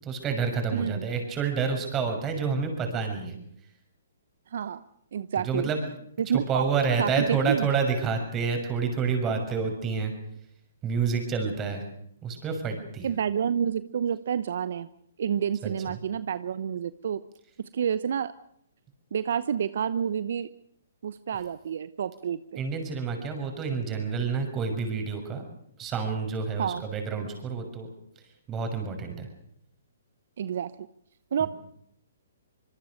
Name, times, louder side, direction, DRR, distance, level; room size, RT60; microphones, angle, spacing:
voice 1, 0.0-3.4 5.4-5.8 6.3-10.1 10.8-11.8 12.2-13.1 15.6-16.0 22.6-25.4 25.8-27.9 28.5-29.3 31.4-31.5, right 5 dB, 20° right, 4 dB, 6.5 m, -28 dB
voice 2, 0.7-1.1 4.5-4.8 5.1-5.7 6.2-6.6 7.0-7.7 13.0-14.9 15.2-17.2 17.6-18.3 19.1-20.5 21.0-22.6 26.6-26.8 30.4-30.7 31.3-31.5, right 8 dB, 60° right, 15 dB, 0.9 m, -29 dB
25.5 x 21.5 x 6.6 m, 0.71 s
hypercardioid pair, 140°, 0 cm